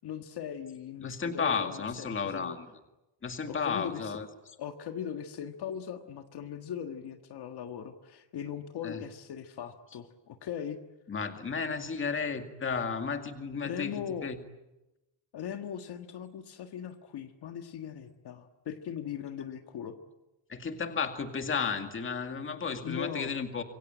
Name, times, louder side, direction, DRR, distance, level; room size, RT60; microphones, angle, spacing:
voice 1, 0.0-2.6 3.5-4.2 4.6-10.8 13.6-14.3 15.3-20.0 22.8-23.3, left 8 dB, 55° left, 6 dB, 1.6 m, -39 dB
voice 2, 1.0-2.6 3.2-4.3 8.8-9.0 11.1-14.4 20.5-23.6, left 5 dB, 25° left, 6 dB, 2.2 m, -33 dB
27.0 x 23.5 x 9.0 m, 0.99 s
cardioid pair, 175°, 46 cm